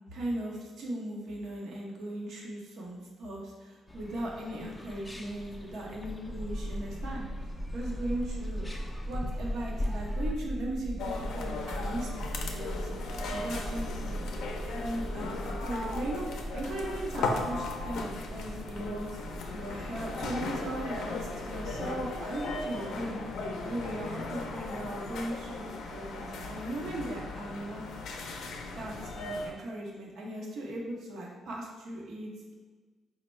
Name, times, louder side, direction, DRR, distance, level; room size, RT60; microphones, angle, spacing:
voice 1, 0.1-8.7 9.0-12.1 12.5-12.9 13.3-13.9 14.7-23.2 23.6-27.8 28.8-32.5, right 1 dB, 70° right, -2 dB, 0.8 m, -38 dB
sound 1, 3.9-10.3, left 1 dB, 15° left, 0.4 m, -40 dB
sound 2, 6.2-25.9, equal, 35° right, 0.7 m, -39 dB
sound 3, 11.0-29.5, left 3 dB, 75° left, 0.4 m, -37 dB
4.3 x 2.1 x 3.1 m, 1.4 s
cardioid pair, 90°, 0 cm